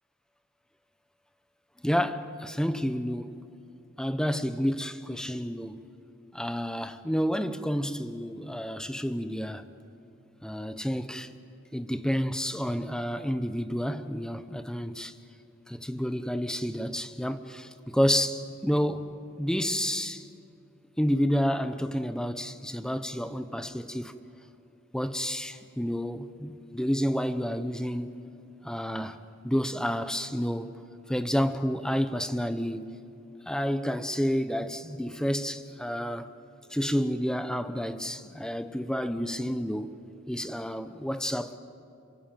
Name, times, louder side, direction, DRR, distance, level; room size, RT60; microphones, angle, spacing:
voice 1, 1.8-3.4 4.0-5.8 6.3-9.7 10.4-11.3 11.7-15.1 15.7-19.1 19.4-20.3 21.0-24.1 24.9-28.3 28.6-30.8 31.1-32.9 33.5-36.3 36.7-40.0 40.3-41.6, equal, 5° left, 0.9 m, -30 dB
27.5 x 23.5 x 9.2 m
head